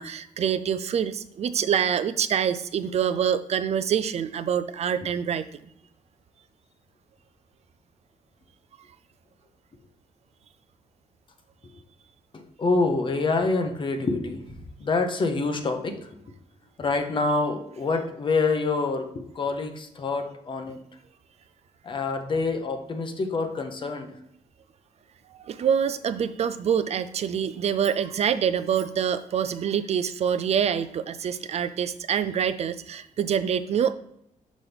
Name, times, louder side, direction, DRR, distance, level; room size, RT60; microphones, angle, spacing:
voice 1, 0.0-5.4 25.3-33.9, right 8 dB, 55° right, 11 dB, 0.4 m, -26 dB
voice 2, 12.3-16.1 16.8-20.8 21.8-24.2, left 3 dB, 40° left, 6 dB, 0.9 m, -26 dB
6.1 x 5.5 x 3.4 m, 0.76 s
cardioid pair, 135°, 13 cm